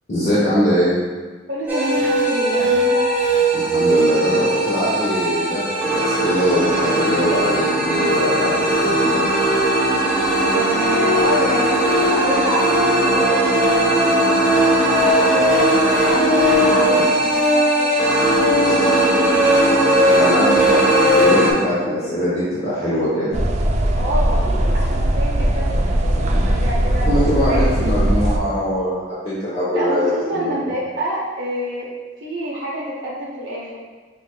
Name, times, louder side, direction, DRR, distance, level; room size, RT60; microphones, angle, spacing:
voice 1, 0.1-1.0 3.5-9.3 16.9-17.0 20.1-20.8 21.1-23.4 27.1-30.0 30.3-30.5, equal, 40° left, -10 dB, 0.9 m, -22 dB
voice 2, 1.5-3.1 10.5-14.2 14.7-19.6 20.1-21.7 23.9-28.2 29.7-31.9 32.2-33.9, right 1 dB, 75° right, -5 dB, 0.7 m, -27 dB
sound 1, 1.7-21.5, right 1 dB, 10° right, 0.7 m, -18 dB
sound 2, 23.3-28.4, right 1 dB, 40° right, 0.4 m, -19 dB
6.5 x 3.1 x 2.2 m, 1.4 s
head